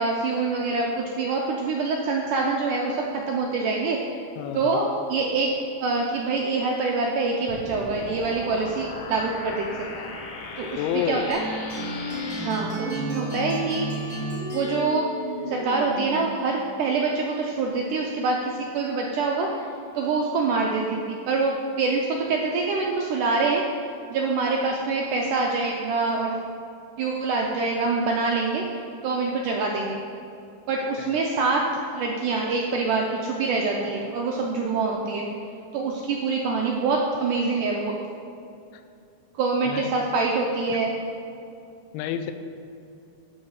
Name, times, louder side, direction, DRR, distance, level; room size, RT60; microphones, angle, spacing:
voice 1, 0.0-4.2 4.5-5.5 5.8-10.1 10.6-11.4 12.4-14.2 14.5-15.1 15.5-23.6 24.1-26.4 27.0-30.0 30.7-31.6 31.9-35.3 35.7-37.9 39.3-40.9, right 3 dB, 80° right, -1 dB, 1.8 m, -25 dB
voice 2, 4.4-4.8 10.8-11.2 31.0-31.2 38.7-38.8 39.7-39.9 40.7-40.8 41.9-42.3, left 10 dB, 85° left, 9 dB, 2.5 m, -29 dB
sound 1, 7.5-12.5, left 3 dB, 70° left, 2.0 m, -38 dB
sound 2, 11.3-16.4, right 1 dB, 10° left, 1.3 m, -32 dB
11.0 x 4.1 x 6.3 m, 2.5 s
omnidirectional pair, 4.4 m